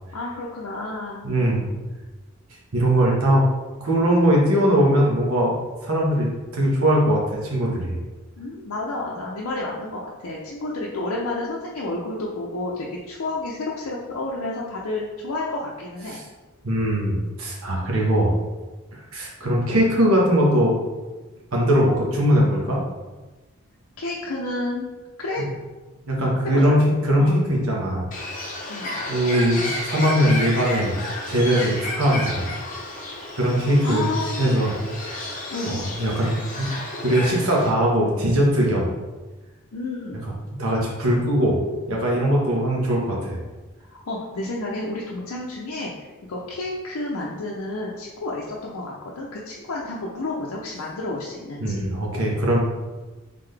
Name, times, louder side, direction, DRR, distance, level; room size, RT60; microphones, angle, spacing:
voice 1, 0.1-1.2 8.4-16.2 24.0-24.9 25.2-25.5 26.5-26.8 27.2-27.4 28.7-29.0 33.8-34.4 35.5-35.8 39.7-40.2 43.9-51.9, left 2 dB, 70° left, -3 dB, 0.6 m, -30 dB
voice 2, 1.2-1.7 2.7-3.4 3.8-5.5 5.8-8.0 16.1-16.2 16.6-18.3 18.9-20.8 21.5-22.8 26.1-28.0 29.1-31.0 31.3-32.5 33.4-34.1 34.4-34.7 35.7-36.7 37.0-38.9 40.2-40.3 40.6-41.6 41.9-43.4 51.6-52.6, equal, 70° right, -3 dB, 1.2 m, -20 dB
Bird, 28.1-37.7, left 1 dB, 35° left, 0.8 m, -32 dB
3.9 x 3.6 x 3.3 m, 1.2 s
head